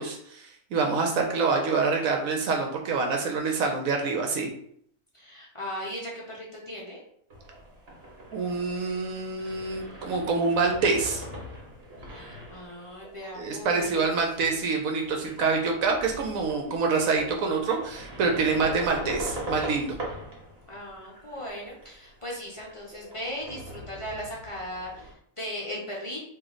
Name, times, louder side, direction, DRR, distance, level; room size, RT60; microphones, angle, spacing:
voice 1, 0.0-4.5 8.3-11.2 13.4-20.0, right 4 dB, 75° right, 2 dB, 1.0 m, -26 dB
voice 2, 5.1-7.0 12.1-14.1 20.7-26.2, equal, 35° left, -4 dB, 0.5 m, -38 dB
sound 1, 7.3-25.1, right 1 dB, 45° right, 1.1 m, -42 dB
3.1 x 2.6 x 3.9 m, 0.67 s
omnidirectional pair, 1.6 m